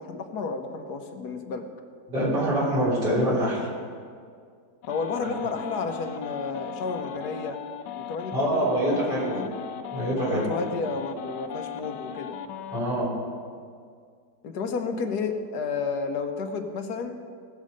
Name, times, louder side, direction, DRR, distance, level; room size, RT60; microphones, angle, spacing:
voice 1, 0.0-1.7 4.9-7.6 7.9-9.5 10.2-12.4 14.4-17.2, left 4 dB, 70° left, 5 dB, 1.5 m, -31 dB
voice 2, 2.1-3.7 5.2-5.3 8.3-9.4 9.9-10.5 12.7-13.1, right 1 dB, 85° right, -7 dB, 4.5 m, -25 dB
sound 1, 4.8-12.8, left 9 dB, 85° left, 1.3 m, -37 dB
18.0 x 7.5 x 5.2 m, 2.1 s
omnidirectional pair, 1.8 m